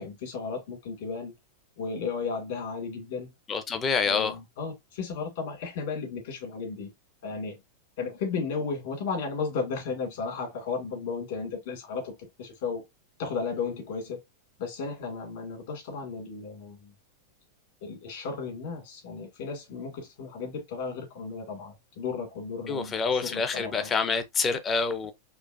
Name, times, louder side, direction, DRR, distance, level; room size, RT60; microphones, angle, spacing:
voice 1, 0.0-1.3 1.8-3.3 4.0-6.9 7.2-7.6 8.0-12.9 13.2-14.2 14.6-16.9 17.8-23.9, left 5 dB, 55° left, 1.9 m, -34 dB
voice 2, 3.5-4.4 22.7-25.1, left 5 dB, 15° left, 0.4 m, -27 dB
4.5 x 2.8 x 2.4 m
supercardioid pair, 175°, 0 cm